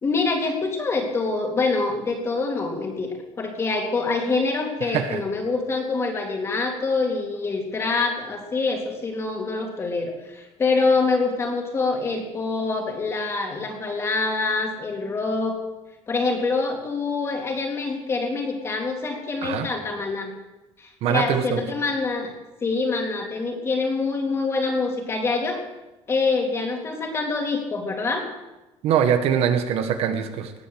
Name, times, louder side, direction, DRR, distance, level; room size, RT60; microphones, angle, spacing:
voice 1, 0.0-15.6 16.1-20.3 20.8-22.3 22.6-25.6 26.1-28.3, left 3 dB, 25° left, 2 dB, 2.7 m, -25 dB
voice 2, 4.9-5.2 19.4-19.7 21.0-21.7 28.8-30.5, right 8 dB, 60° right, 8 dB, 1.5 m, -23 dB
19.0 x 8.8 x 7.9 m, 1.0 s
cardioid pair, 170°, 11 cm